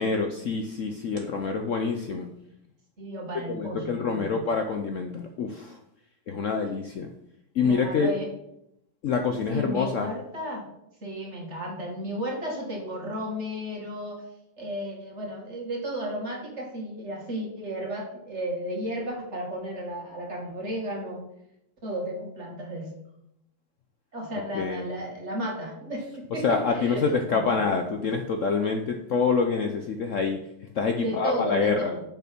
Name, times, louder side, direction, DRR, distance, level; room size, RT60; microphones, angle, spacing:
voice 1, 0.0-2.3 3.5-5.8 6.3-7.1 7.5-8.1 9.0-10.1 24.5-24.8 26.4-30.4 30.7-31.9, left 5 dB, 85° left, 5 dB, 0.6 m, -26 dB
voice 2, 3.0-4.4 7.6-8.3 9.5-10.7 11.0-14.2 14.6-21.2 21.8-22.9 24.1-27.6 31.0-32.0, equal, 35° right, -1 dB, 2.3 m, -33 dB
7.0 x 6.0 x 5.9 m, 0.78 s
omnidirectional pair, 2.3 m